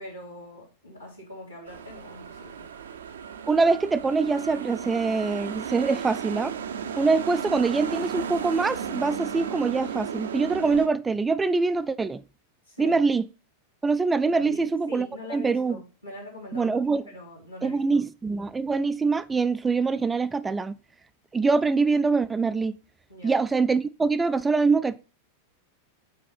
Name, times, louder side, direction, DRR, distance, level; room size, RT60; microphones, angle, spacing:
voice 1, 0.0-2.7 12.6-13.0 14.3-16.8 17.1-17.8 23.1-23.4, left 1 dB, 90° left, 2.4 m, -43 dB
sound 1, 1.7-10.9, right 7 dB, 65° right, 0.5 m, -34 dB
voice 2, 3.5-6.6 7.0-12.2 12.8-13.2 13.8-15.8 16.5-17.0 17.6-20.8 21.3-22.8 23.2-25.0, right 4 dB, 15° right, 0.3 m, -24 dB
5.0 x 4.5 x 5.5 m
figure-of-eight pair, 90°, 0 cm